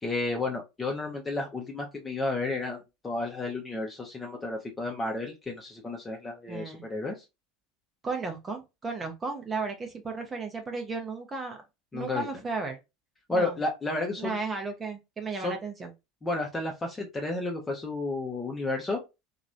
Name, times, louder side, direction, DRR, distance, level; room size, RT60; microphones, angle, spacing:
voice 1, 0.0-7.2 11.9-12.3 13.3-14.4 15.4-15.5 16.2-19.0, left 2 dB, 15° left, 0.8 m, -32 dB
voice 2, 6.5-6.8 8.0-11.6 11.9-12.8 13.3-13.6 14.2-15.9, right 4 dB, 25° right, 0.7 m, -34 dB
3.0 x 2.5 x 2.4 m
figure-of-eight pair, 70°, 0 cm